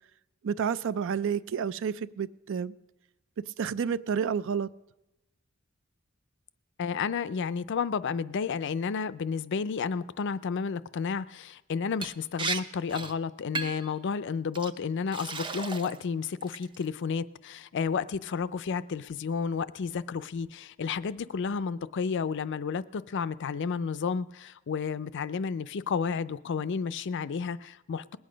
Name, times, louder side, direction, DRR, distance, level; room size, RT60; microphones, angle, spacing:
voice 1, 0.4-2.7 3.4-4.7, right 7 dB, 65° right, 0.4 m, -30 dB
voice 2, 6.8-28.2, left 5 dB, 60° left, 0.4 m, -31 dB
Liquid, 12.0-12.1 12.4-12.6 12.9-13.1 13.6-13.9 14.5-14.7 15.1-16.0 16.4-16.8, right 4 dB, 25° right, 0.6 m, -34 dB
20.0 x 8.6 x 5.1 m
head